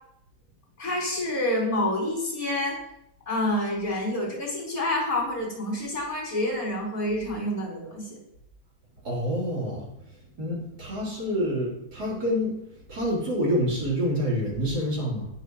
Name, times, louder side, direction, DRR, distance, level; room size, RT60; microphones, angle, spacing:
voice 1, 0.8-2.8 3.3-8.0, left 1 dB, 60° left, -4 dB, 5.1 m, -28 dB
voice 2, 9.0-9.9 10.4-12.6 12.9-15.3, equal, 90° right, -6 dB, 4.5 m, -27 dB
18.0 x 6.9 x 3.2 m, 0.75 s
omnidirectional pair, 1.7 m